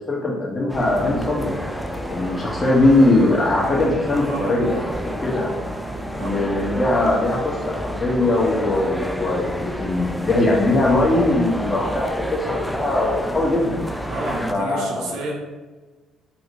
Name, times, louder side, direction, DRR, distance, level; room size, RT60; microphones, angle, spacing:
voice 1, 0.0-1.5 2.1-4.7 5.2-5.5 6.2-13.8 14.5-15.1, left 2 dB, 30° left, -3 dB, 1.2 m, -20 dB
sound 1, 0.7-14.5, equal, 5° left, 0.3 m, -30 dB
sound 2, 0.9-7.1, right 1 dB, 15° right, 1.4 m, -37 dB
voice 2, 4.1-5.0 6.2-6.5 14.1-15.3, right 2 dB, 80° right, -2 dB, 0.8 m, -31 dB
3.1 x 3.1 x 2.8 m, 1.3 s
supercardioid pair, 65°, 0 cm